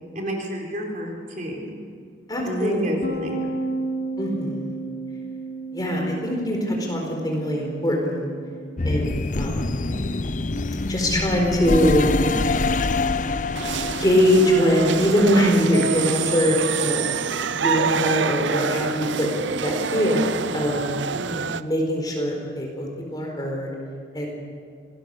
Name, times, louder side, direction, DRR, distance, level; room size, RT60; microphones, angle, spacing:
voice 1, 0.1-1.8 2.4-3.6 21.1-21.6, equal, 45° right, 0 dB, 4.0 m, -30 dB
voice 2, 2.3-2.8 4.2-4.8 5.7-8.3 8.8-9.7 10.9-12.0 14.0-17.1 17.6-19.3 19.6-21.0 21.6-23.7 24.1-24.3, equal, 20° left, 0 dB, 4.4 m, -22 dB
sound 1, 3.0-12.5, right 3 dB, 60° left, 3.8 m, -35 dB
sound 2, 8.8-16.2, left 3 dB, 45° left, 0.6 m, -26 dB
sound 3, 13.5-21.6, right 6 dB, 85° right, 0.7 m, -27 dB
26.5 x 18.5 x 6.7 m, 2.2 s
head